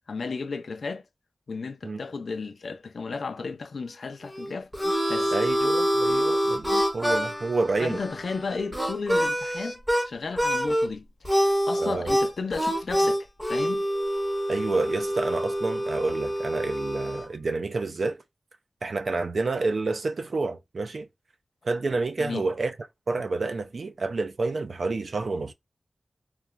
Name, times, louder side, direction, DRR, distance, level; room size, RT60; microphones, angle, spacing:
voice 1, 0.1-1.0 1.5-4.7 5.1-5.4 7.8-13.8 22.2-22.5, left 4 dB, 85° left, 0.4 m, -34 dB
Harmonica, 4.3-10.1 10.4-10.9 11.2-17.3, equal, 10° right, 0.9 m, -26 dB
voice 2, 5.3-8.0 11.8-12.1 14.5-18.2 18.8-21.1 21.6-22.7 23.1-25.5, right 3 dB, 70° right, 0.4 m, -29 dB
3.0 x 2.1 x 2.3 m
wide cardioid pair, 105°, 0 cm